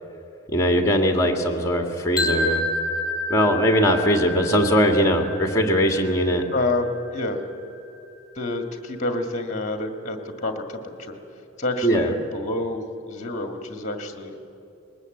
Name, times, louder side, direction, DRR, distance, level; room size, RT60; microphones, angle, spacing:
voice 1, 0.5-2.6 3.3-6.4 11.8-12.1, equal, 15° left, 3 dB, 1.9 m, -20 dB
sound 1, 2.2-8.1, left 1 dB, 5° right, 4.0 m, -30 dB
voice 2, 6.5-6.9 7.1-7.4 8.4-11.2 11.6-14.3, left 2 dB, 35° left, 5 dB, 1.9 m, -28 dB
20.5 x 19.5 x 7.8 m, 2.8 s
head